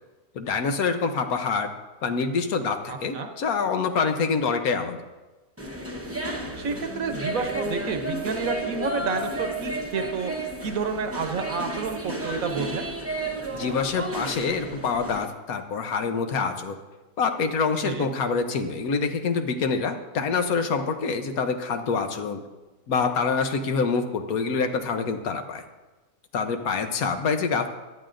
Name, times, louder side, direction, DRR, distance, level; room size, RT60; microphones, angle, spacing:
voice 1, 0.3-1.7 2.0-5.0 13.5-16.8 17.2-22.4 22.9-25.6 26.3-27.7, left 5 dB, 75° left, 7 dB, 1.3 m, -26 dB
voice 2, 2.9-3.3 6.6-12.9 17.8-18.1, right 5 dB, 70° right, 6 dB, 1.3 m, -30 dB
sound 1, 5.6-15.3, right 1 dB, 10° right, 0.7 m, -32 dB
17.5 x 11.0 x 2.6 m, 1.2 s
omnidirectional pair, 1.6 m